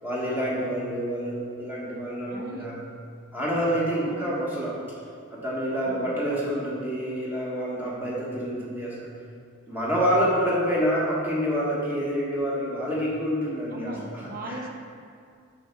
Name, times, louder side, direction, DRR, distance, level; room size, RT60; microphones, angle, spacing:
voice 1, 0.0-2.8 3.3-4.8 5.3-9.1 9.7-14.6, equal, 10° right, -6 dB, 1.5 m, -27 dB
voice 2, 2.3-2.7 4.1-4.4 5.8-6.2 13.7-14.7, right 1 dB, 45° right, 2 dB, 0.8 m, -38 dB
6.0 x 5.7 x 4.5 m, 2.3 s
head